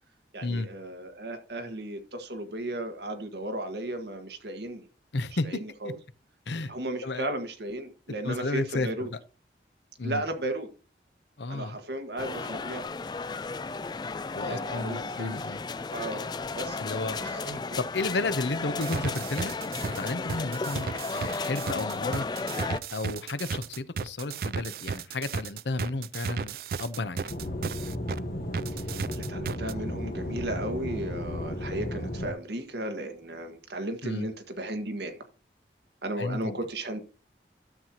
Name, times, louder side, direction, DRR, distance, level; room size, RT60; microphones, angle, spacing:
voice 1, 0.3-4.9 5.4-6.0 6.7-9.1 10.0-10.7 11.5-12.8 14.4-15.4 15.9-17.8 28.7-35.2 36.0-37.0, right 1 dB, 75° right, 1.6 m, -35 dB
voice 2, 5.1-5.5 5.8-5.9 6.5-6.7 7.0-7.3 8.2-9.2 10.0-10.2 11.4-11.8 14.3-15.6 16.8-17.2 17.8-19.5 20.0-22.2 22.9-27.3 34.0-34.3 36.2-36.6, left 2 dB, 85° left, 0.8 m, -32 dB
sound 1, 12.2-22.8, left 4 dB, 25° left, 0.3 m, -34 dB
sound 2, 18.8-28.2 28.5-29.7, right 5 dB, 55° right, 0.4 m, -34 dB
Aircraft / Engine, 27.3-32.3, left 1 dB, 55° left, 1.3 m, -34 dB
12.5 x 7.6 x 2.9 m
head